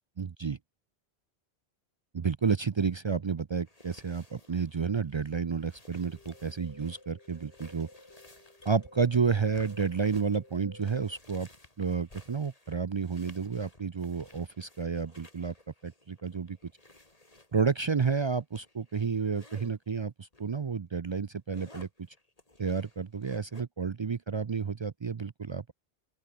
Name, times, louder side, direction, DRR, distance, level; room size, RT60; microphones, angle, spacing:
voice 1, 0.2-0.6 2.1-7.9 8.7-11.5 11.8-15.5 15.8-16.6 17.5-21.9 22.6-25.7, right 5 dB, 45° right, 0.3 m, -31 dB
sound 1, 3.2-3.3 6.0-11.2, left 2 dB, 85° left, 4.6 m, -54 dB
sound 2, 3.6-19.7 20.3-20.5 20.9-23.6, left 2 dB, 35° left, 3.1 m, -57 dB
open air
omnidirectional pair, 1.1 m